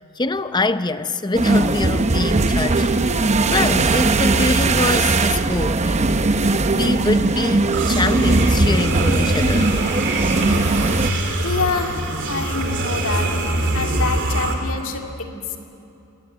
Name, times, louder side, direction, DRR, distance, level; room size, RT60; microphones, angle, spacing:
voice 1, 0.0-2.9 3.2-5.9 6.7-9.8, left 2 dB, 20° left, 0.6 m, -24 dB
sound 1, 1.3-11.1, right 3 dB, 30° right, 0.7 m, -19 dB
sound 2, 7.7-14.5, right 1 dB, 55° right, 3.0 m, -23 dB
voice 2, 11.4-12.0 12.3-13.4 13.7-15.6, left 4 dB, 65° left, 2.3 m, -26 dB
25.5 x 18.0 x 9.2 m
head